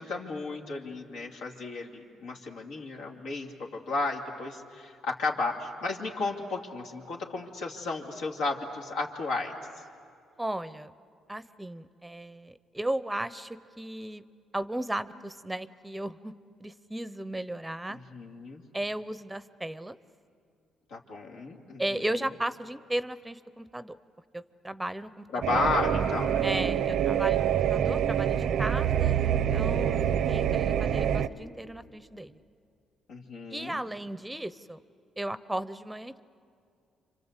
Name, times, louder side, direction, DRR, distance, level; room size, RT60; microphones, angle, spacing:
voice 1, 0.0-1.9 2.2-9.5 17.9-18.6 20.9-22.0 25.3-26.4 26.9-27.0 33.1-33.8, left 3 dB, 90° left, 0 dB, 2.7 m, -33 dB
voice 2, 10.4-10.9 11.3-14.2 14.5-16.3 16.6-18.0 18.7-20.0 21.8-23.9 24.3-25.3 25.5-25.7 26.4-30.0 30.3-32.4 33.5-34.8 35.2-36.2, right 1 dB, 10° right, 14 dB, 0.6 m, -35 dB
sound 1, 25.4-31.3, right 9 dB, 75° right, 0.6 m, -26 dB
29.0 x 25.0 x 8.2 m, 2.4 s
cardioid pair, 90°, 0 cm